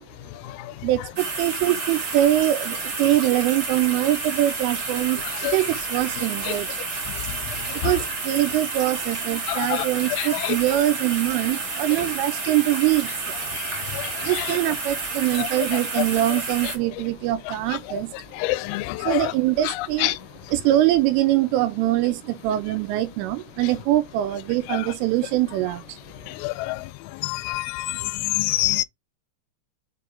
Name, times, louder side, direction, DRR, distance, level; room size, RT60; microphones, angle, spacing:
voice 1, 0.8-6.8 7.7-13.4 14.2-18.1 19.0-20.2 20.5-26.0, right 14 dB, 85° right, 3.2 m, -23 dB
sound 1, 1.2-16.8, right 3 dB, 50° right, 1.4 m, -30 dB
voice 2, 18.4-19.1 20.0-20.1 26.4-26.7 27.3-27.8 28.4-28.8, left 18 dB, 90° left, 3.3 m, -25 dB
7.7 x 3.8 x 3.5 m
omnidirectional pair, 5.9 m